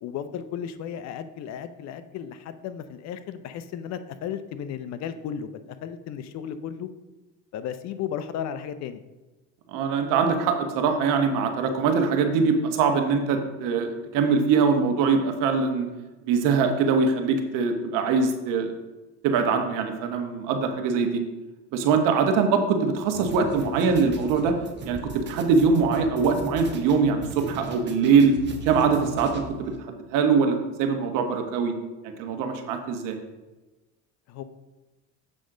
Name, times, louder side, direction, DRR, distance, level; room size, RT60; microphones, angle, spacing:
voice 1, 0.0-6.9 7.5-9.0 34.3-34.4, left 8 dB, 55° left, 11 dB, 0.7 m, -34 dB
voice 2, 9.7-15.9 16.3-18.7 19.2-21.2 21.7-24.5 24.8-28.4 28.6-31.7 32.2-33.2, right 5 dB, 70° right, 6 dB, 1.3 m, -23 dB
sound 1, 23.1-29.8, right 2 dB, 35° right, 1.2 m, -39 dB
7.6 x 6.2 x 3.8 m, 1.1 s
supercardioid pair, 110°, 33 cm